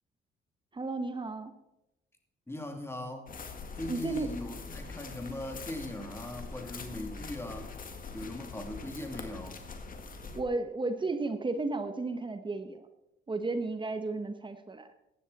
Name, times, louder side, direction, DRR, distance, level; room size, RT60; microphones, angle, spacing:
voice 1, 0.7-1.5 3.9-4.3 10.3-12.9 13.3-14.9, right 3 dB, 25° right, 9 dB, 1.0 m, -33 dB
voice 2, 2.5-3.3 3.7-7.7 8.1-9.6, left 1 dB, 10° left, 4 dB, 2.6 m, -40 dB
sound 1, 3.3-10.4, left 4 dB, 45° left, 1.9 m, -43 dB
15.5 x 10.0 x 4.1 m, 0.91 s
cardioid pair, 90°, 20 cm